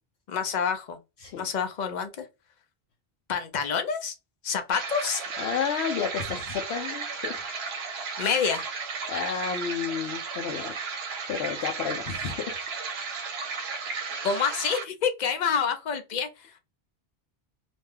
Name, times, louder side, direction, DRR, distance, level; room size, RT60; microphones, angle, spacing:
voice 1, 0.3-1.0 1.4-2.3 3.3-4.1 4.4-5.2 8.2-8.6 14.2-16.3, left 6 dB, 50° left, 0.6 m, -27 dB
sound 1, 4.7-14.8, right 5 dB, 75° right, 0.9 m, -34 dB
voice 2, 5.4-7.5 9.1-10.7 11.3-12.5 12.9-13.1, left 7 dB, 85° left, 0.8 m, -31 dB
2.5 x 2.2 x 3.3 m
omnidirectional pair, 1.1 m